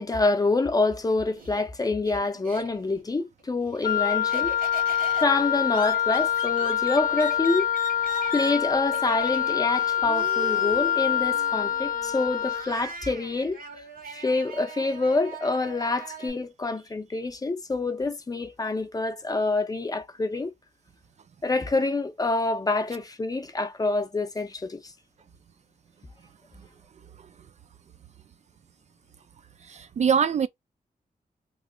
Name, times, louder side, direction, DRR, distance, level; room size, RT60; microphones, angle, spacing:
voice 1, 0.0-4.5 5.2-7.7 8.1-13.6 14.1-20.5 21.4-24.8, left 3 dB, 25° left, 0.5 m, -26 dB
Laughter, 0.9-3.0 3.4-16.3, right 4 dB, 90° right, 1.6 m, -41 dB
Wind instrument woodwind instrument, 3.8-12.7, left 10 dB, 65° left, 0.6 m, -25 dB
voice 2, 29.7-30.5, right 7 dB, 50° right, 0.4 m, -23 dB
3.0 x 2.4 x 3.7 m
wide cardioid pair, 155°, 15 cm